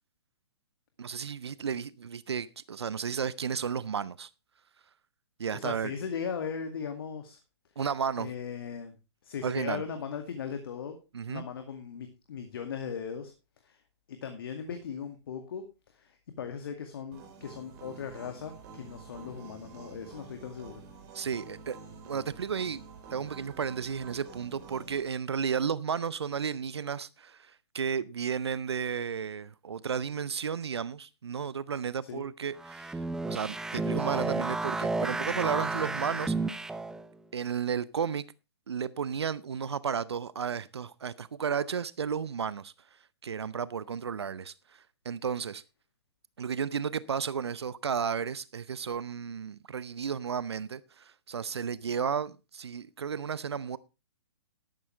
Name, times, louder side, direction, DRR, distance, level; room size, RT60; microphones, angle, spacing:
voice 1, 1.0-4.3 5.4-5.9 7.8-8.3 9.4-9.8 11.1-11.5 21.1-21.8 22.0-22.8 23.1-33.0 33.3-36.6 37.3-38.2 38.7-42.7 43.2-45.6 46.4-53.8, right 7 dB, 70° right, 0.7 m, -33 dB
voice 2, 5.5-7.4 8.2-8.9 9.2-11.0 11.2-13.3 13.6-13.8 14.1-15.6 15.9-20.8 32.0-32.2, left 7 dB, 55° left, 2.1 m, -38 dB
sound 1, 17.1-25.0, right 5 dB, 35° right, 4.2 m, -48 dB
sound 2, 32.6-37.1, right 3 dB, 5° right, 0.5 m, -32 dB
13.0 x 12.0 x 3.3 m
figure-of-eight pair, 125°, 14 cm